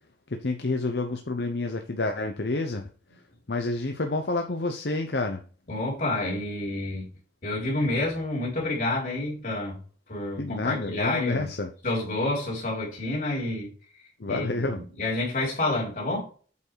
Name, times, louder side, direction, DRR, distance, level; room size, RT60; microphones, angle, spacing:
voice 1, 0.3-2.9 3.5-5.4 10.4-11.7 14.2-14.8, left 2 dB, 70° left, 0.8 m, -29 dB
voice 2, 5.7-7.1 7.4-9.8 10.1-11.5 11.8-13.7 14.3-16.3, left 2 dB, 50° left, 3.5 m, -29 dB
8.3 x 4.7 x 4.7 m
head